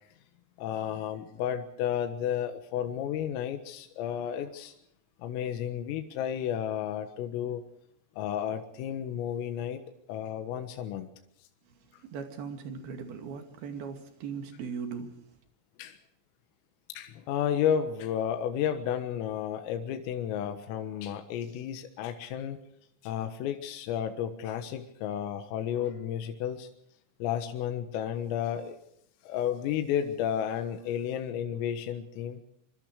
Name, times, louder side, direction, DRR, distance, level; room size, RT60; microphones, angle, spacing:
voice 1, 0.6-4.7 5.2-7.6 8.2-9.8 10.1-11.1 15.8-16.0 16.9-22.6 23.0-26.7 27.2-28.8 29.2-32.4, left 9 dB, 80° left, 4.0 m, -32 dB
voice 2, 11.7-15.3, right 6 dB, 55° right, 3.8 m, -39 dB
26.0 x 24.0 x 4.9 m
omnidirectional pair, 6.0 m